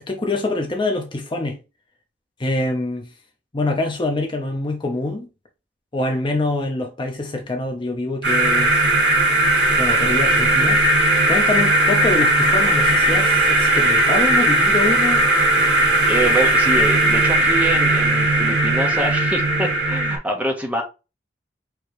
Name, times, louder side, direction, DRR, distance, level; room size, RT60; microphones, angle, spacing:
voice 1, 0.1-1.6 2.4-3.1 3.5-5.3 5.9-8.8 9.8-10.8 11.3-15.3, left 2 dB, 30° left, 0.7 m, -25 dB
sound 1, 8.2-20.2, right 1 dB, 85° right, 2.2 m, -17 dB
voice 2, 16.1-20.8, right 1 dB, 10° right, 1.0 m, -25 dB
4.8 x 3.1 x 3.1 m
head